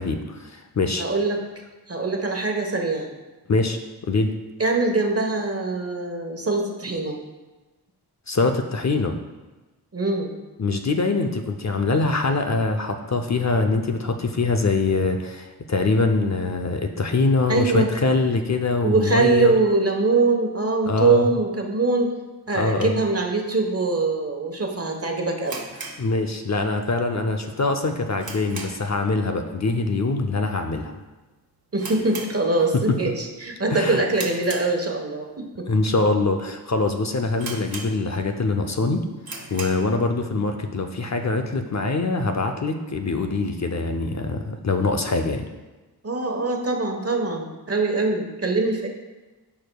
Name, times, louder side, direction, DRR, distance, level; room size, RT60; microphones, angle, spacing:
voice 1, 0.0-1.0 3.5-4.3 8.3-9.1 10.6-19.6 20.8-21.3 22.5-23.0 26.0-30.9 32.7-33.0 33.7-34.0 35.7-39.0 39.5-45.5, left 3 dB, 45° left, 5 dB, 0.6 m, -23 dB
voice 2, 1.0-1.4 1.9-3.1 4.6-7.2 9.9-10.3 17.5-17.9 18.8-22.1 22.5-25.6 31.7-35.7 46.0-48.9, right 3 dB, 35° right, 2 dB, 1.2 m, -23 dB
sound 1, 25.4-26.8 27.1-27.2 27.7-29.0 29.3-29.6 29.9-30.0 30.7-31.0 31.2-31.3 31.7-32.9 33.3-33.6 34.1-35.2 35.8-35.9 36.5-36.6 36.8-36.9 37.4-38.3 38.7-38.8 39.2-39.9, right 3 dB, 60° right, 1.2 m, -37 dB
12.5 x 4.7 x 2.3 m, 1.2 s
wide cardioid pair, 60°, 40 cm